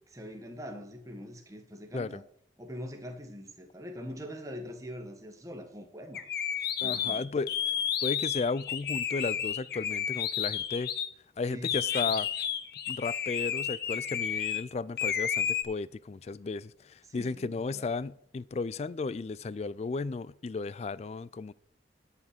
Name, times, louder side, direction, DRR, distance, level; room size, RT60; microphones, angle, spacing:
voice 1, 0.1-2.2 2.6-6.2 6.8-7.4 11.4-12.1 17.1-17.9, equal, 20° right, 1.3 m, -43 dB
sound 1, 6.1-11.1 11.6-14.6 15.0-15.6, left 8 dB, 55° left, 0.9 m, -31 dB
voice 2, 6.8-7.5 8.0-10.9 11.4-12.3 12.9-21.5, left 4 dB, 35° left, 0.3 m, -34 dB
11.0 x 5.7 x 6.5 m
head